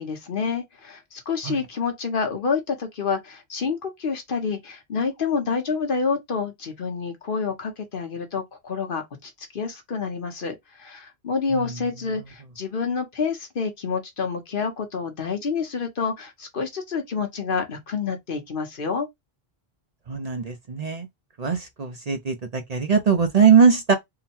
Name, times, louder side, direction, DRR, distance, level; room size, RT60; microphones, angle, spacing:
voice 1, 0.0-19.1, left 5 dB, 55° left, 1.1 m, -28 dB
voice 2, 20.1-21.1 21.4-23.9, right 6 dB, 45° right, 0.7 m, -20 dB
3.8 x 2.2 x 4.3 m
omnidirectional pair, 1.1 m